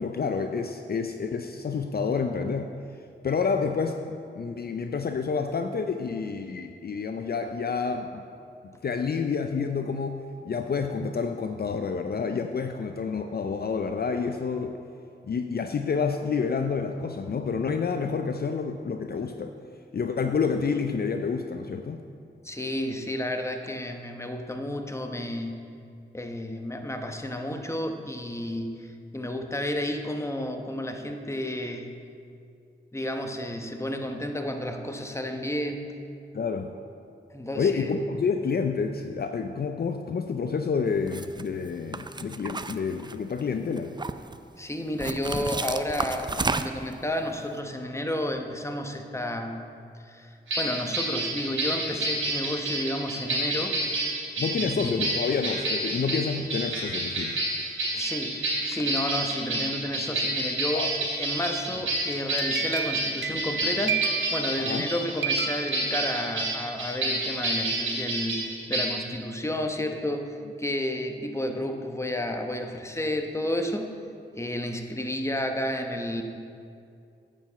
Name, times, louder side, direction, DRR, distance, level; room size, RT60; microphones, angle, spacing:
voice 1, 0.0-2.7 3.2-8.2 8.6-14.8 15.2-19.5 19.9-22.0 36.3-36.7 37.6-43.9 54.4-57.3 60.7-60.9 64.6-64.8, left 5 dB, 50° left, 6 dB, 0.5 m, -29 dB
voice 2, 22.4-25.7 26.1-31.9 32.9-35.9 37.3-37.9 44.6-53.8 54.6-54.9 57.9-60.9 61.2-74.0 74.3-76.2, left 1 dB, 15° left, 4 dB, 1.0 m, -31 dB
sound 1, 41.1-41.4 41.9-43.4 43.8-44.4 45.0-46.9, right 3 dB, 20° right, 0.4 m, -31 dB
sound 2, 50.5-68.8, right 1 dB, 90° right, 2.5 m, -29 dB
sound 3, 62.1-64.9 65.2-66.5, right 6 dB, 70° right, 0.6 m, -32 dB
9.1 x 5.0 x 6.8 m, 2.4 s
cardioid pair, 45°, 20 cm